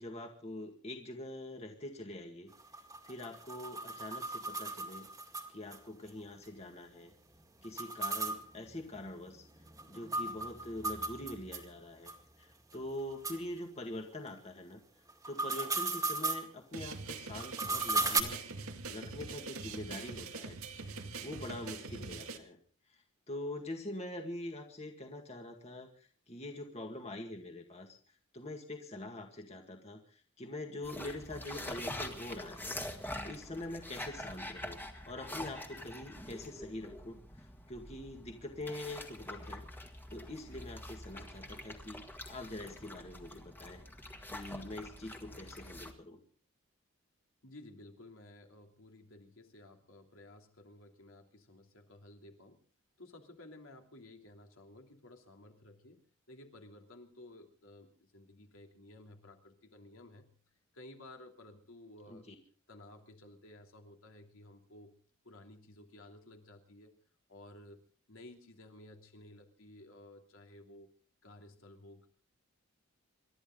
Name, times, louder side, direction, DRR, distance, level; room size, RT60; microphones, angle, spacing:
voice 1, 0.0-2.5 3.0-5.1 5.5-7.1 7.6-9.4 9.9-12.1 12.4-14.8 15.3-18.4 18.9-20.9 21.2-22.6 22.9-28.0 28.3-34.8 35.1-37.2 37.7-39.6 40.1-42.0 42.3-43.8 44.3-46.2 62.1-62.4, left 1 dB, 30° left, 4 dB, 2.0 m, -44 dB
sound 1, 2.5-5.8 6.1-6.2 6.4-6.5 7.6-11.7 12.1-12.2 12.7-12.8 13.2-13.4 15.1-16.5 17.4-18.2, right 3 dB, 15° right, 2.1 m, -36 dB
sound 2, 16.7-22.4, right 4 dB, 80° right, 2.2 m, -43 dB
sound 3, 30.8-45.9, left 1 dB, 10° left, 1.8 m, -45 dB
voice 2, 47.4-52.6 53.0-56.0 56.3-60.3 60.7-62.2 62.7-64.9 65.2-66.9 67.3-67.8 68.1-70.9 71.2-72.1, left 1 dB, 70° left, 3 dB, 3.1 m, -55 dB
28.0 x 13.0 x 3.9 m, 0.41 s
head